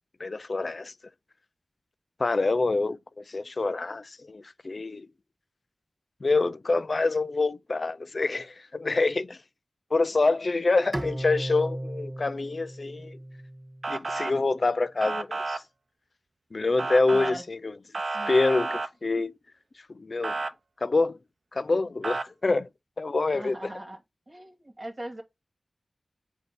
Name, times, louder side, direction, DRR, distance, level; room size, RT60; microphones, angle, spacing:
voice 1, 0.2-0.9 2.2-3.0 3.3-5.1 6.2-9.4 9.9-13.2 13.9-15.6 16.5-17.7 18.3-19.3 20.0-20.4 20.8-21.2 21.5-22.7 23.0-23.6, left 3 dB, 55° left, 0.4 m, -26 dB
Bowed string instrument, 10.9-14.2, right 1 dB, 20° right, 0.9 m, -36 dB
Motor vehicle (road) / Siren, 13.8-14.3 15.0-15.6 16.8-17.3 17.9-18.9 20.2-20.5 22.0-22.2, right 3 dB, 60° right, 0.7 m, -31 dB
voice 2, 17.1-17.4 18.1-18.4 19.1-19.2 23.3-24.0 24.3-25.2, right 1 dB, 40° right, 2.3 m, -40 dB
7.9 x 2.7 x 4.6 m
wide cardioid pair, 60°, 0 cm